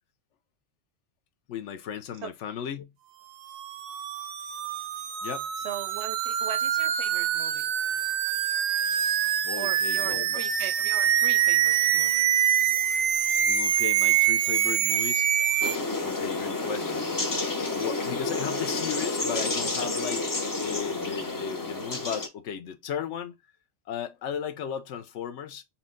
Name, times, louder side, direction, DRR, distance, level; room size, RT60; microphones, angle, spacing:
voice 1, 1.5-2.9 5.2-5.5 8.9-10.4 13.5-15.7 16.0-17.1 17.7-20.3 20.6-23.4 23.9-25.6, left 8 dB, 70° left, 0.9 m, -36 dB
sound 1, 3.5-15.8, right 10 dB, 85° right, 1.0 m, -25 dB
voice 2, 5.6-7.7 9.5-12.2, right 7 dB, 65° right, 0.7 m, -39 dB
sound 2, 15.6-22.3, left 3 dB, 30° left, 0.4 m, -30 dB
4.3 x 2.2 x 3.7 m
omnidirectional pair, 1.3 m